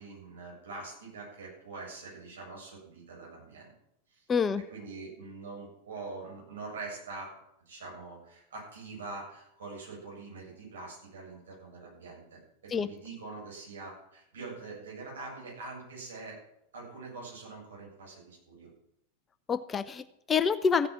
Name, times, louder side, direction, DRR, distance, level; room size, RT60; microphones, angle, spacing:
voice 1, 0.0-3.7 4.1-4.3 4.5-7.3 7.7-16.4 16.7-18.7, right 3 dB, 65° right, -2 dB, 7.9 m, -44 dB
voice 2, 4.3-4.6 12.7-12.9 19.5-20.9, left 6 dB, 20° left, 13 dB, 0.6 m, -27 dB
15.0 x 9.5 x 7.3 m, 0.79 s
figure-of-eight pair, 90°, 0 cm